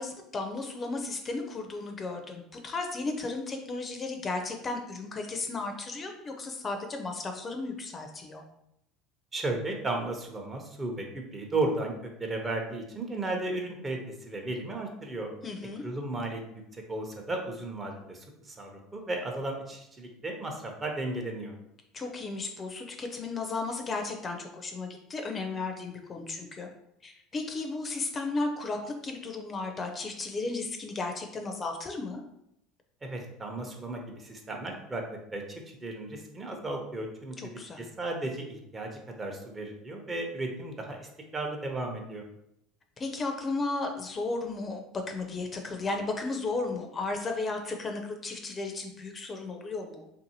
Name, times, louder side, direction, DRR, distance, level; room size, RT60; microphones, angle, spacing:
voice 1, 0.0-8.4 15.4-15.8 21.9-26.7 27.0-32.2 37.4-37.9 43.0-50.1, left 3 dB, 30° left, 4 dB, 0.4 m, -34 dB
voice 2, 9.3-15.3 15.8-16.4 16.7-21.5 33.0-35.0 35.3-37.5 37.8-42.2, right 2 dB, 25° right, 2 dB, 0.7 m, -35 dB
2.6 x 2.5 x 2.8 m, 0.78 s
hypercardioid pair, 85°, 0 cm